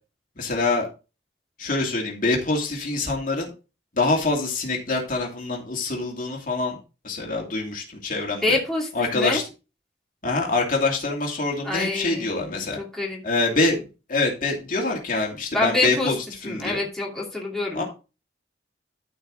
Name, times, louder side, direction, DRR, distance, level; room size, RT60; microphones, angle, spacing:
voice 1, 0.4-0.9 1.6-3.5 3.9-6.8 7.0-8.4 8.9-9.4 10.2-12.8 13.2-13.8 14.1-16.2 16.4-16.8 17.7-17.8, left 3 dB, 45° left, -1 dB, 2.6 m, -25 dB
voice 2, 8.4-9.4 11.6-13.2 15.5-16.1 16.4-17.8, left 2 dB, ahead, -4 dB, 2.7 m, -26 dB
14.0 x 4.8 x 3.8 m, 0.30 s
head